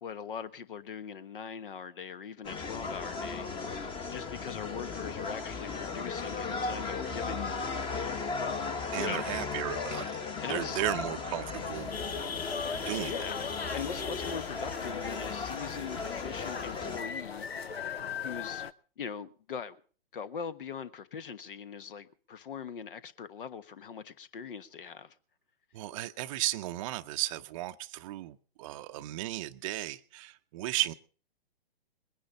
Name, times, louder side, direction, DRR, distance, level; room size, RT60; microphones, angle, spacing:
voice 1, 0.0-3.5 4.1-7.7 8.9-9.3 10.4-10.8 13.0-18.7 19.0-19.8 20.1-25.1, left 7 dB, 60° left, 1.3 m, -41 dB
sound 1, 2.4-17.0, left 4 dB, 15° left, 1.2 m, -36 dB
voice 2, 8.9-10.2 10.5-12.0 12.7-13.2 25.7-30.9, right 15 dB, 35° right, 0.6 m, -35 dB
sound 2, 10.9-16.9, left 8 dB, 45° left, 2.5 m, -54 dB
sound 3, 11.5-18.7, left 6 dB, 85° left, 0.8 m, -38 dB
21.0 x 10.0 x 5.4 m
figure-of-eight pair, 120°, 30 cm